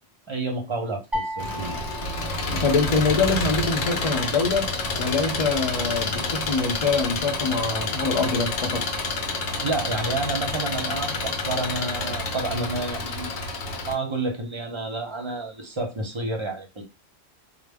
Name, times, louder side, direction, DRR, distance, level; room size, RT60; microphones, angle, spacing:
voice 1, 0.3-1.8 9.4-13.3 13.8-16.8, right 2 dB, 35° right, 0.5 m, -30 dB
sound 1, 1.1-3.3, equal, ahead, 0.8 m, -34 dB
Engine, 1.4-13.9, left 3 dB, 90° left, 0.9 m, -29 dB
voice 2, 2.5-8.9, left 4 dB, 40° left, 0.6 m, -24 dB
2.0 x 2.0 x 3.4 m
omnidirectional pair, 1.1 m